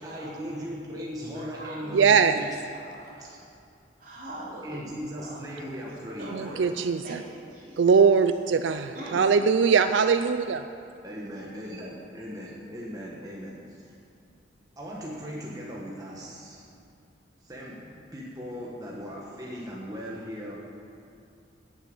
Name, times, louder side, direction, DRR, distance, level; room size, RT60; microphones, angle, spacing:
voice 1, 0.0-2.5 3.2-3.4 4.6-6.6 11.0-13.9 14.8-16.7 17.4-20.7, equal, 20° right, -4 dB, 1.3 m, -38 dB
voice 2, 1.3-2.0 2.7-3.3 4.0-5.5 5.8-5.9 6.2-7.8 8.9-9.2, right 1 dB, 45° right, -7 dB, 3.6 m, -42 dB
voice 3, 1.9-2.4 6.3-7.2 7.8-10.6, right 5 dB, 85° right, 9 dB, 0.4 m, -21 dB
12.0 x 7.2 x 8.7 m, 2.5 s
head